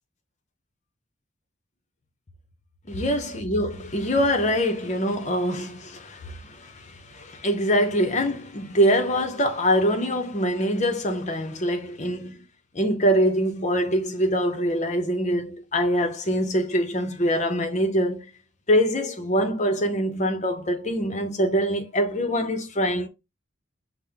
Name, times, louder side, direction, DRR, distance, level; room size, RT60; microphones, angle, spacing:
voice 1, 2.9-12.4 12.7-18.3 18.7-23.1, equal, 35° left, 0.7 m, -24 dB
5.4 x 2.1 x 3.3 m
head